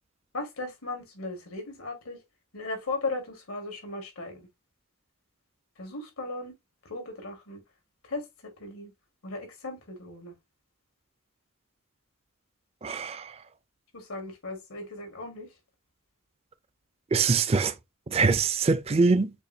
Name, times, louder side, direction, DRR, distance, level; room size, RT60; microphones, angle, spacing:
voice 1, 0.3-2.2 2.5-4.5 5.8-6.5 6.8-7.6 8.1-8.3 8.6-8.9 9.2-10.3 13.9-15.5, left 2 dB, 85° left, 1.7 m, -36 dB
voice 2, 12.8-13.3 17.1-17.7 18.1-19.3, right 4 dB, 30° right, 0.4 m, -23 dB
6.8 x 2.6 x 2.7 m
head